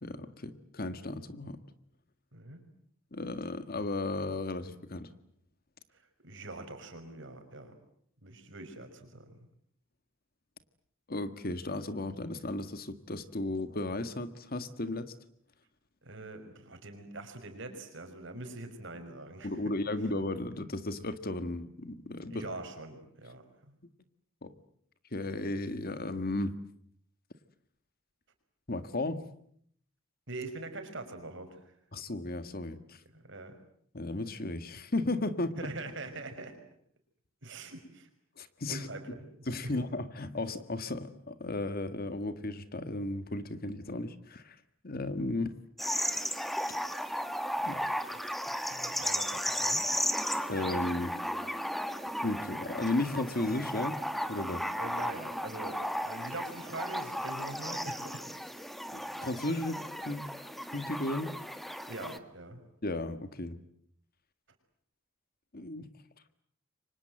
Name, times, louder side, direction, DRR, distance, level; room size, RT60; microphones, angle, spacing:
voice 1, 0.0-1.6 3.1-5.1 11.1-15.1 19.4-22.6 24.4-24.5 25.1-26.6 28.7-29.2 31.9-33.0 33.9-35.6 38.4-38.9 39.5-44.5 44.8-45.6 47.6-47.8 50.5-51.2 52.2-54.0 54.3-54.7 58.9-60.4 60.7-61.4 62.8-63.6 65.5-65.9, left 2 dB, 45° left, 11 dB, 1.7 m, -35 dB
voice 2, 5.9-7.7 8.2-9.3 16.0-19.5 22.3-23.7 30.3-31.6 33.1-33.6 35.6-36.6 37.4-38.1 38.7-39.2 39.6-39.7 47.7-47.8 48.5-50.2 54.8-58.2 61.9-62.6, right 2 dB, 60° right, 7 dB, 5.6 m, -43 dB
sound 1, 45.8-62.2, equal, ahead, 1.5 m, -35 dB
29.5 x 25.0 x 7.9 m, 0.67 s
head